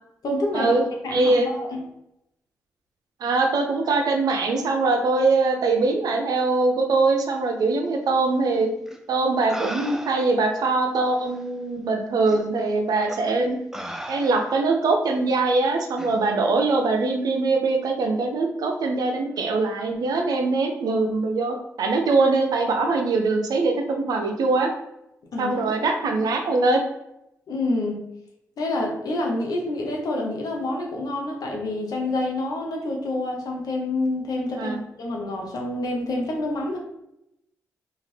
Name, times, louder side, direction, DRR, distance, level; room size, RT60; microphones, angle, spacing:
voice 1, 0.2-0.7 1.0-1.8 25.3-25.6 27.5-28.0 28.6-36.8, left 2 dB, 70° left, 0 dB, 0.8 m, -27 dB
voice 2, 1.1-1.5 3.2-8.7 9.1-13.6 14.1-24.7 25.4-26.8 34.6-34.8, right 3 dB, 70° right, 3 dB, 0.5 m, -22 dB
sound 1, 8.9-9.0 9.5-10.4 11.3-11.4 12.3-12.4 13.1-13.3 13.7-14.7 16.0-16.2, equal, 5° right, 0.4 m, -36 dB
2.7 x 2.4 x 3.2 m, 0.83 s
supercardioid pair, 45°, 7 cm